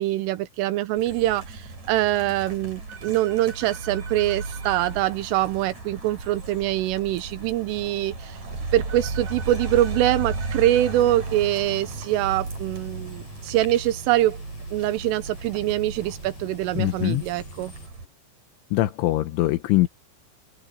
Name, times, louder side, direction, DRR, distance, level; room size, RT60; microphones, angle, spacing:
voice 1, 0.0-8.4 8.7-14.4 14.7-17.7, right 14 dB, 85° right, 3.6 m, -24 dB
sound 1, 1.0-18.0, right 3 dB, 35° right, 7.4 m, -35 dB
sound 2, 2.9-5.0 8.9-11.0, right 7 dB, 55° right, 2.9 m, -44 dB
sound 3, 11.2-17.9, left 4 dB, 50° left, 8.4 m, -48 dB
voice 2, 16.8-17.2 18.7-19.9, left 16 dB, 80° left, 3.3 m, -22 dB
open air
omnidirectional pair, 5.6 m